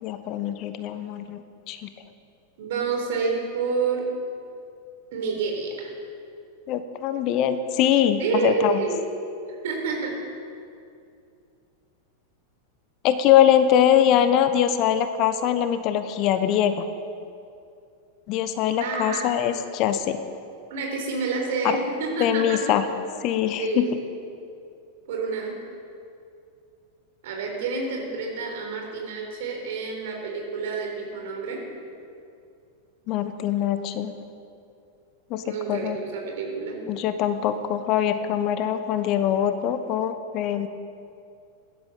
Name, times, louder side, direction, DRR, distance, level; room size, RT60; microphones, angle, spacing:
voice 1, 0.0-1.9 6.7-8.8 13.0-16.9 18.3-20.2 21.6-21.8 22.2-22.8 23.2-23.9 33.1-34.1 35.3-36.0 36.9-40.7, left 10 dB, 40° left, 10 dB, 1.0 m, -23 dB
voice 2, 2.6-4.0 5.1-5.7 8.2-9.0 9.6-10.1 18.8-19.3 20.7-22.6 23.6-23.9 25.1-25.5 27.2-31.6 35.4-36.8, right 4 dB, 55° right, 1 dB, 4.0 m, -28 dB
17.0 x 12.0 x 6.8 m, 2.5 s
figure-of-eight pair, 90°, 0 cm